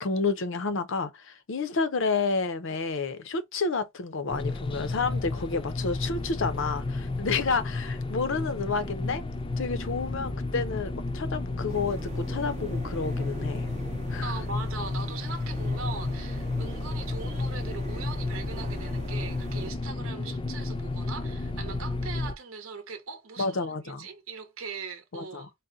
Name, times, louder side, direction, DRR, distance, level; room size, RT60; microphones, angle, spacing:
voice 1, 0.0-9.2 9.6-13.7 14.1-14.3 23.4-24.1 25.1-25.5, left 4 dB, 65° left, 0.6 m, -30 dB
sound 1, 4.3-22.3, left 2 dB, 25° left, 0.5 m, -32 dB
sound 2, 11.7-19.7, right 3 dB, 35° right, 0.6 m, -45 dB
voice 2, 14.2-25.5, right 4 dB, 85° right, 0.8 m, -40 dB
4.1 x 2.1 x 3.6 m
head